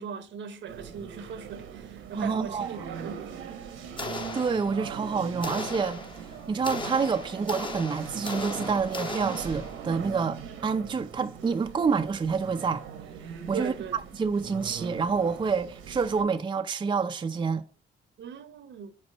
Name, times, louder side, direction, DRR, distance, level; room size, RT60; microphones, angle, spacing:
voice 1, 0.0-3.4 13.5-14.0 18.2-18.9, right 6 dB, 65° right, 0.9 m, -39 dB
sound 1, 0.7-16.2, right 7 dB, 90° right, 1.2 m, -41 dB
voice 2, 2.1-2.9 4.3-6.0 6.5-12.8 13.5-17.6, right 5 dB, 25° right, 0.5 m, -28 dB
sound 2, 4.0-5.0 5.4-9.9, left 3 dB, 25° left, 1.0 m, -37 dB
5.0 x 4.3 x 5.4 m
cardioid pair, 90°, 20 cm